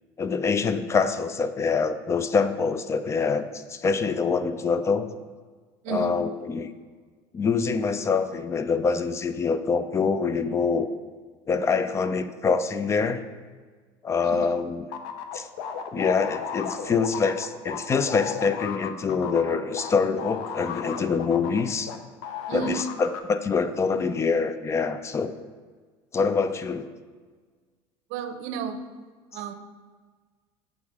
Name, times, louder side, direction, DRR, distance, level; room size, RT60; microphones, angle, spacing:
voice 1, 0.2-5.1 5.9-6.7 7.3-10.9 11.5-13.3 14.0-14.9 15.3-15.5 15.9-21.9 22.5-25.3 26.1-26.9, left 5 dB, 20° left, 11 dB, 0.3 m, -25 dB
voice 2, 5.8-6.2 14.2-14.5 22.5-22.9 28.1-28.9 29.3-29.5, right 6 dB, 65° right, 9 dB, 0.6 m, -32 dB
sound 1, 14.9-22.0 22.2-23.2, left 7 dB, 75° left, 0.6 m, -34 dB
7.1 x 3.5 x 4.8 m, 1.5 s
supercardioid pair, 125°, 13 cm